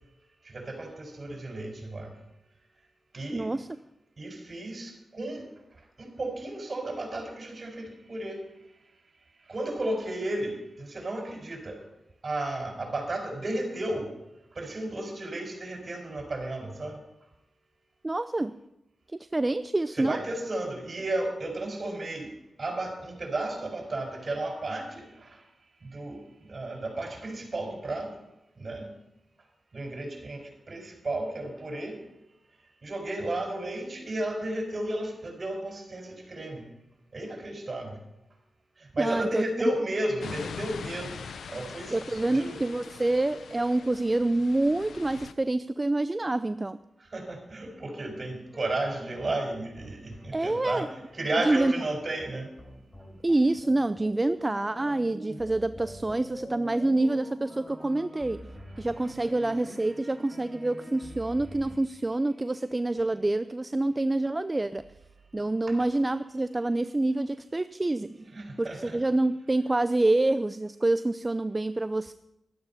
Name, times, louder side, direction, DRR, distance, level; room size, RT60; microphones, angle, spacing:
voice 1, 0.5-2.1 3.1-3.5 4.2-5.4 6.0-8.4 9.5-11.8 12.2-14.1 14.6-17.0 19.9-22.3 22.6-25.4 25.8-26.2 26.5-28.1 28.6-28.9 29.7-30.4 30.7-32.0 32.8-36.7 37.1-38.0 38.9-41.2 41.5-43.2 43.6-43.9 47.1-52.5 65.7-65.8 68.2-69.0, right 1 dB, 50° right, 3 dB, 5.1 m, -33 dB
voice 2, 3.3-3.7 18.0-18.6 19.3-20.2 39.0-39.4 41.9-46.8 50.3-50.9 51.4-51.7 53.2-58.5 58.8-64.8 65.3-68.2 68.6-72.1, right 2 dB, 30° right, 13 dB, 0.5 m, -27 dB
sound 1, 40.2-45.3, left 6 dB, 85° left, 0.7 m, -42 dB
sound 2, 48.5-61.8, equal, 20° left, 4.8 m, -45 dB
12.5 x 12.0 x 5.7 m, 0.89 s
cardioid pair, 45°, 0 cm